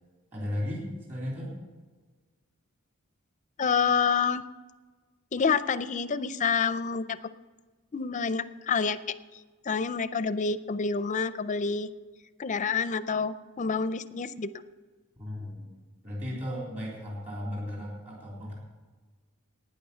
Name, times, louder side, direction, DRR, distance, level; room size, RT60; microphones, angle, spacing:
voice 1, 0.3-0.8 1.1-1.5 15.2-15.7 16.0-18.5, left 1 dB, 35° right, -4 dB, 3.5 m, -35 dB
voice 2, 3.6-4.4 5.3-7.2 7.9-9.4 9.7-11.9 12.4-14.5, left 5 dB, 35° left, 14 dB, 0.4 m, -28 dB
12.0 x 9.4 x 6.8 m, 1.4 s
head